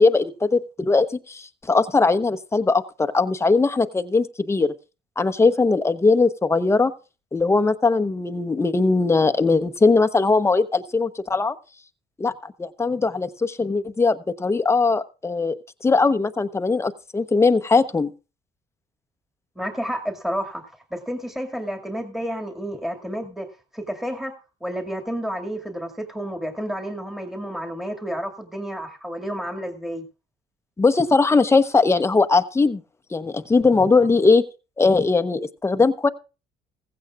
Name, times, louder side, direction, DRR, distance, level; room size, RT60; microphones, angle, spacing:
voice 1, 0.0-4.7 5.2-6.9 7.3-11.6 12.2-15.6 15.8-18.1 30.8-32.8 33.1-34.4 34.8-36.1, left 3 dB, 15° left, 0.9 m, -20 dB
voice 2, 19.6-23.5 23.7-24.3 24.6-30.0, equal, ahead, 2.2 m, -30 dB
16.0 x 15.5 x 2.4 m
cardioid pair, 110°, 17 cm